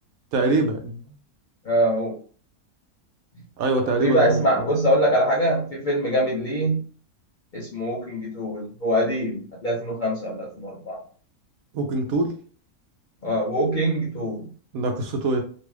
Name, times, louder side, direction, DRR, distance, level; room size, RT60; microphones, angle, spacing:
voice 1, 0.3-1.0 3.6-4.8 11.7-12.3 14.7-15.4, right 2 dB, 75° right, 4 dB, 1.1 m, -24 dB
voice 2, 1.6-2.2 3.8-6.9 7.5-11.0 13.2-14.5, equal, 55° left, -5 dB, 0.5 m, -23 dB
3.0 x 2.4 x 3.1 m, 0.43 s
omnidirectional pair, 1.6 m